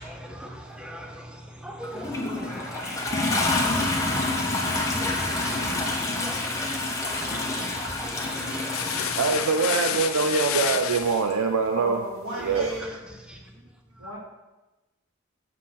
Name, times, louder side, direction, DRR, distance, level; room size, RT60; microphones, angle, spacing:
voice 1, 0.0-4.1 4.7-9.5 12.3-13.0 13.3-13.4, equal, 5° right, 0.5 m, -40 dB
Toilet flush, 1.8-10.2 11.3-11.4, left 2 dB, 15° left, 0.9 m, -28 dB
sound 1, 8.7-11.3, left 9 dB, 65° left, 0.4 m, -29 dB
voice 2, 9.2-12.0 12.4-12.7, right 5 dB, 85° right, 0.5 m, -23 dB
voice 3, 11.7-13.0 14.0-14.2, equal, 70° right, 1.9 m, -34 dB
6.5 x 3.8 x 5.8 m
head